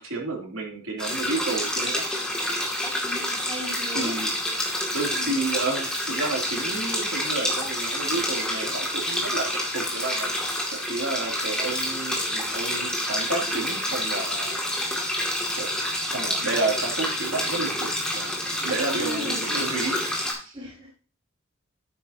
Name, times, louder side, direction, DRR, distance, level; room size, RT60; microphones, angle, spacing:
voice 1, 0.0-2.1 3.9-4.4 4.9-10.3 10.7-15.2 15.5-15.7 16.0-18.4 18.6-20.0 20.3-20.6, right 3 dB, 75° right, 0 dB, 2.9 m, -31 dB
sound 1, 1.0-20.3, left 1 dB, 5° left, 2.2 m, -28 dB
voice 2, 3.0-4.1 5.1-5.3 19.0-19.5 20.5-20.9, equal, 25° right, -4 dB, 2.2 m, -35 dB
11.0 x 8.6 x 2.8 m, 0.37 s
head